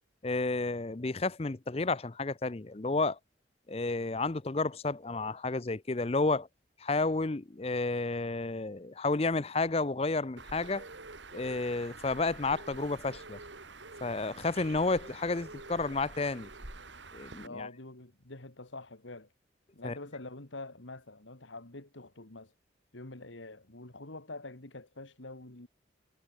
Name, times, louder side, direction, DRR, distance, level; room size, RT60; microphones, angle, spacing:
voice 1, 0.2-3.2 3.7-6.5 6.8-10.9 11.3-13.4 14.0-16.5 17.1-17.7 19.8-19.9, left 3 dB, 30° left, 0.6 m, -31 dB
Bird, 10.4-17.5, right 3 dB, 75° right, 3.5 m, -47 dB
voice 2, 17.4-19.3 19.7-22.5 22.9-25.7, left 2 dB, 80° left, 2.6 m, -46 dB
head